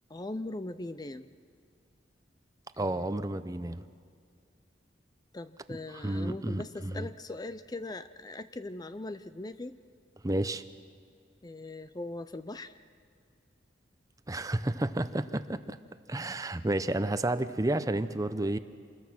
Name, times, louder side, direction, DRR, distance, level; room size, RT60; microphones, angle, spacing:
voice 1, 0.1-1.3 2.8-3.2 5.3-9.8 11.4-12.8, left 2 dB, 20° left, 12 dB, 0.5 m, -40 dB
voice 2, 2.8-3.8 5.9-7.1 10.2-10.6 14.3-15.8 16.1-18.6, right 1 dB, 20° right, 12 dB, 0.7 m, -31 dB
27.5 x 21.5 x 6.2 m, 2.3 s
head